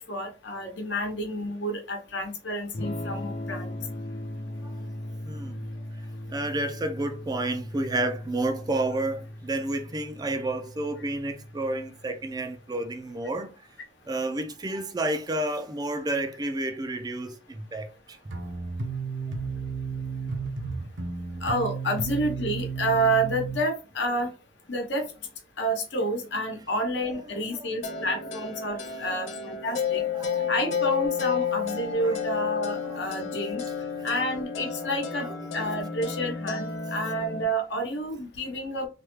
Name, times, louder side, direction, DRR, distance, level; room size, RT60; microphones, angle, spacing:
voice 1, 0.0-3.7 21.4-24.3 24.7-25.1 25.6-30.0 30.5-33.6 34.0-35.3 35.5-38.9, right 1 dB, 70° left, 1.0 m, -29 dB
Electric guitar / Strum, 2.7-12.5, left 1 dB, 35° left, 0.5 m, -38 dB
voice 2, 5.2-5.6 6.3-13.5 14.1-18.2 27.3-27.6 27.9-28.1 28.8-29.2 30.1-30.5 32.0-32.2 32.7-33.4 35.2-36.1, right 2 dB, 20° right, 0.4 m, -31 dB
sound 1, 18.3-23.6, right 4 dB, 75° right, 0.7 m, -33 dB
sound 2, 27.8-37.4, left 6 dB, 85° left, 0.6 m, -31 dB
3.3 x 2.2 x 3.1 m
head